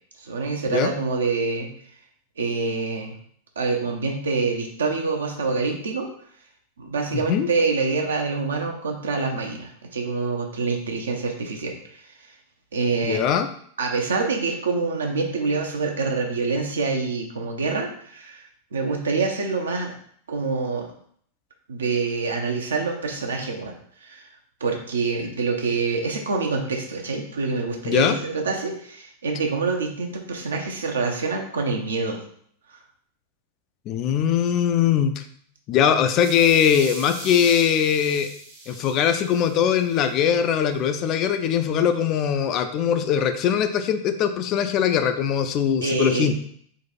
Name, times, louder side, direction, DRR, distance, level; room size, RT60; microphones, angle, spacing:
voice 1, 0.2-1.7 2.4-3.1 3.6-6.1 6.8-12.0 12.7-13.2 13.8-18.4 18.7-19.9 20.3-20.9 21.7-23.7 24.0-24.2 24.6-32.2 45.8-46.4, right 4 dB, 70° right, 2 dB, 0.7 m, -26 dB
voice 2, 7.1-7.5 13.1-13.5 27.8-28.2 33.9-35.2 35.7-38.3 38.7-46.4, left 8 dB, 35° left, 9 dB, 0.3 m, -21 dB
sound 1, 36.1-40.2, right 2 dB, 55° right, 1.1 m, -40 dB
3.9 x 2.4 x 4.0 m, 0.62 s
figure-of-eight pair, 90°, 0 cm